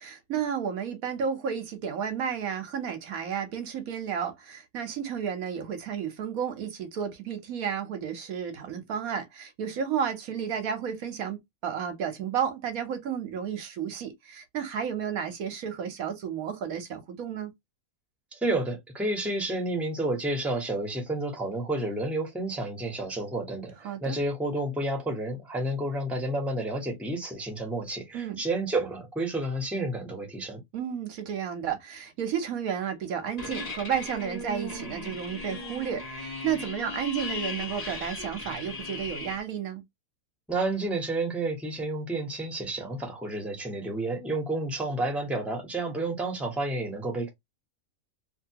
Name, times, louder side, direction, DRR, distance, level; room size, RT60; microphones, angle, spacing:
voice 1, 0.0-17.5 23.8-24.2 28.1-28.4 30.7-39.8, right 8 dB, 75° right, 1.2 m, -32 dB
voice 2, 18.3-30.6 40.5-47.3, right 2 dB, ahead, 1.0 m, -30 dB
sound 1, 33.4-39.4, left 2 dB, 35° left, 0.8 m, -37 dB
2.7 x 2.6 x 2.8 m
omnidirectional pair, 1.5 m